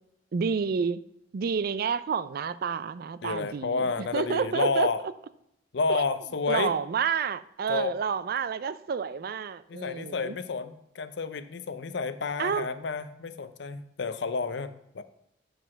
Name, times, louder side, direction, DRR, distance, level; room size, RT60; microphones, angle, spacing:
voice 1, 0.3-1.0 1.3-4.9 5.9-6.0 6.5-10.4 12.4-12.7, right 6 dB, 50° right, 15 dB, 0.4 m, -29 dB
voice 2, 3.2-5.0 5.7-6.7 7.7-7.9 9.7-15.0, left 4 dB, 65° left, 12 dB, 0.6 m, -30 dB
7.8 x 4.8 x 6.0 m, 0.78 s
head